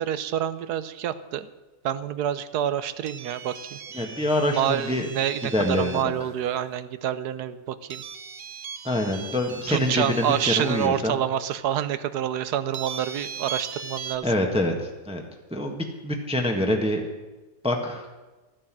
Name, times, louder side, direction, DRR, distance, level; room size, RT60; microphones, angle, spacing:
voice 1, 0.0-1.5 1.8-3.8 4.5-8.0 9.7-14.3, right 10 dB, 80° right, 14 dB, 1.3 m, -27 dB
sound 1, 3.1-6.2 7.9-10.9 11.5-11.6 12.7-14.2, right 6 dB, 45° right, 1.0 m, -38 dB
voice 2, 3.9-5.1 5.5-6.1 8.8-11.1 14.2-15.2 15.5-17.0 17.6-18.0, left 1 dB, 5° right, 2 dB, 1.2 m, -25 dB
13.5 x 9.5 x 7.4 m, 1.2 s
omnidirectional pair, 1.7 m